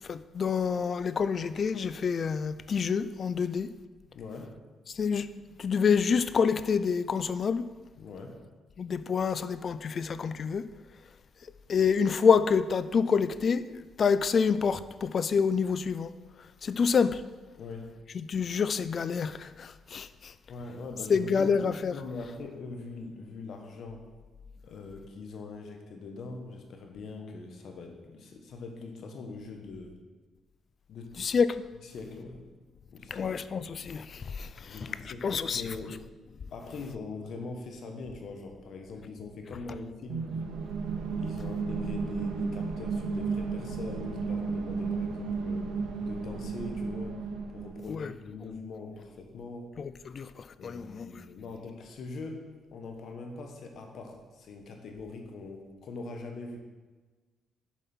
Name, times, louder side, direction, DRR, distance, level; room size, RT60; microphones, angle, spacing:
voice 1, 0.1-3.7 4.9-5.3 5.6-7.7 8.8-10.7 11.7-13.6 14.0-16.1 16.6-17.2 18.1-20.3 21.1-21.9 31.2-31.6 33.1-34.8 35.2-35.6 47.9-48.1 49.8-51.1, left 6 dB, 50° left, 0.3 m, -27 dB
voice 2, 4.1-4.6 8.0-8.4 17.6-17.9 20.5-21.5 21.9-24.1 24.6-30.0 30.9-31.2 31.8-32.5 32.9-33.3 33.6-33.7 34.6-36.1 36.5-40.3 41.2-45.7 46.0-47.2 47.5-49.7 50.6-52.4 52.7-56.6, left 3 dB, 65° left, 1.1 m, -42 dB
sound 1, 40.1-47.9, right 4 dB, 80° right, 0.8 m, -33 dB
7.2 x 5.3 x 4.3 m
cardioid pair, 90°, 0 cm